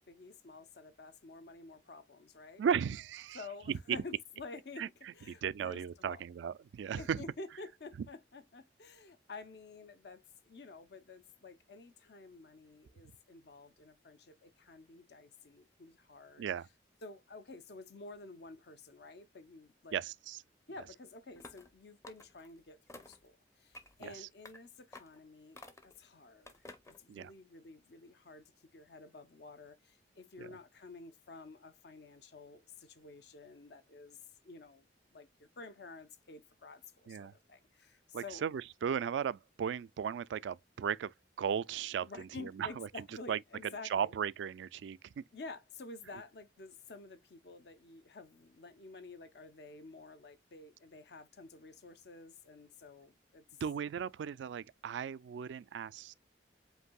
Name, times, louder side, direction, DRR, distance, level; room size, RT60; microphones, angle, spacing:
voice 1, 0.0-2.6 3.3-5.8 6.1-6.2 6.9-16.5 17.0-20.0 20.7-34.2 34.4-34.9 35.1-38.4 42.0-44.1 45.3-53.4, left 3 dB, 60° left, 0.7 m, -51 dB
voice 2, 2.6-3.4 3.7-4.0 4.8-4.9 5.4-7.2 16.4-16.7 19.9-20.4 24.0-24.3 27.1-27.3 30.4-30.5 37.1-37.3 38.1-42.9 43.3-43.4 43.9-45.2 53.6-56.1, right 7 dB, 75° right, 0.3 m, -36 dB
sound 1, 21.4-21.7 22.0-22.5 22.9-23.3 23.7-24.1 24.4-24.6 24.9-25.2 25.6-26.0 26.5-27.0, left 2 dB, 15° left, 0.6 m, -52 dB
7.9 x 2.6 x 2.2 m
head